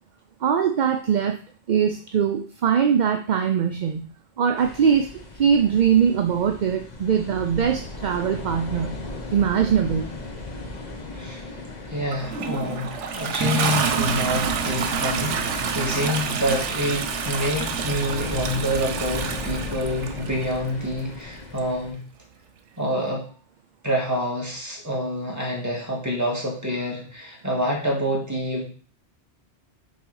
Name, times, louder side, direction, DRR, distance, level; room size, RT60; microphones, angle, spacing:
voice 1, 0.4-1.4 1.7-5.1 5.3-9.0 9.3-10.1, right 7 dB, 50° right, 5 dB, 0.6 m, -21 dB
sound 1, 4.6-21.9, left 2 dB, 40° left, 1.3 m, -36 dB
voice 2, 11.1-11.5 11.9-22.0 22.8-23.2 23.8-28.6, equal, 15° right, -2 dB, 2.0 m, -27 dB
Toilet flush, 12.1-20.5 21.6-21.7, right 6 dB, 90° right, 1.1 m, -27 dB
6.9 x 3.9 x 4.8 m, 0.42 s
omnidirectional pair, 1.2 m